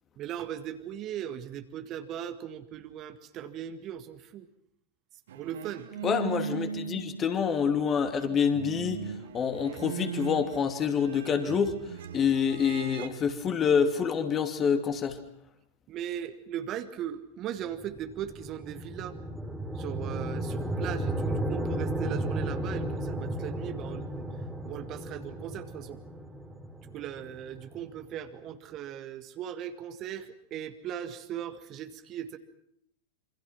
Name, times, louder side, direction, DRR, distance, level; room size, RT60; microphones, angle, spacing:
voice 1, 0.2-4.5 5.3-5.9 15.9-19.1 19.7-24.3 24.6-26.0 26.8-32.4, right 10 dB, 35° right, 9 dB, 1.9 m, -38 dB
sound 1, 5.3-7.7 8.1-13.1, right 8 dB, 60° right, 1.6 m, -39 dB
voice 2, 6.0-9.0 9.3-11.8 12.1-15.2, left 7 dB, 25° left, 7 dB, 2.9 m, -27 dB
sound 2, 17.7-28.0, right 1 dB, 10° right, 3.4 m, -34 dB
28.0 x 26.0 x 6.0 m, 0.71 s
figure-of-eight pair, 90°, 0 cm